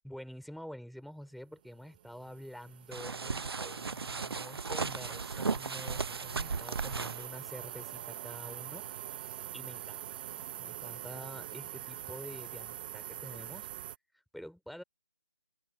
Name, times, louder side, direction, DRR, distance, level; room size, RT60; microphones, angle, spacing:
voice 1, 0.0-8.9 9.5-10.0 10.3-13.7 14.1-14.8, equal, ahead, 3.4 m, -48 dB
sound 1, 1.8-14.0, right 12 dB, 20° right, 1.0 m, -44 dB
sound 2, 2.9-7.2, right 4 dB, 60° right, 1.0 m, -36 dB
figure-of-eight pair, 160°, 14 cm